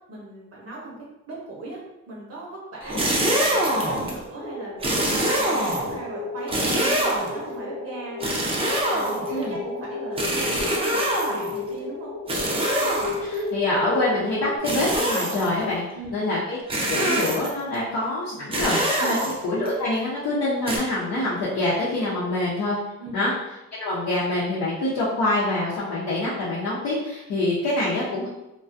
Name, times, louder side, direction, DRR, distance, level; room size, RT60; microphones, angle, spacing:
voice 1, 0.1-0.9 1.3-8.6 8.9-12.1 15.9-16.1 19.0-19.3 23.0-23.2, right 2 dB, 50° right, -3 dB, 0.7 m, -38 dB
sound 1, 2.8-4.2 4.8-6.0 6.5-7.4 8.2-9.4 10.2-11.6 12.3-13.4 14.6-15.6 16.7-17.6 18.5-19.7 20.7-20.8, right 1 dB, 20° right, 0.5 m, -24 dB
sound 2, 4.4-14.6, left 2 dB, 40° left, 1.0 m, -33 dB
voice 2, 13.2-15.8 16.1-16.6 16.9-19.2 19.4-22.8 23.1-23.3 23.7-28.3, left 2 dB, 65° left, -8 dB, 0.7 m, -25 dB
2.3 x 2.2 x 2.5 m, 0.95 s
cardioid pair, 90°, 30 cm